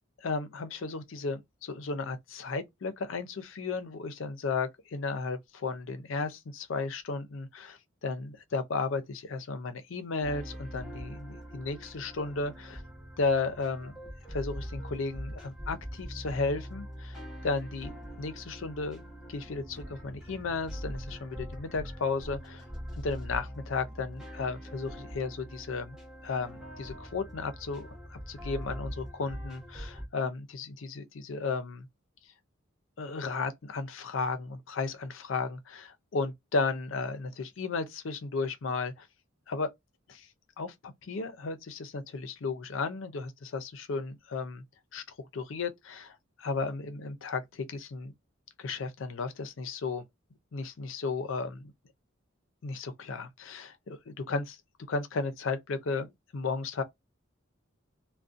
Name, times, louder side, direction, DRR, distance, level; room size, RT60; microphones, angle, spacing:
voice 1, 0.2-12.8 13.2-14.0 14.3-17.9 18.2-19.0 19.3-22.6 23.0-26.0 26.2-31.9 33.0-39.1 39.5-39.7 40.1-40.3 40.6-44.6 44.9-45.0 45.3-48.1 48.6-50.0 50.5-51.7 52.6-54.6 54.9-56.8, left 4 dB, 70° left, 0.5 m, -34 dB
sound 1, 10.2-30.1, equal, 5° right, 0.9 m, -43 dB
2.5 x 2.1 x 2.4 m
head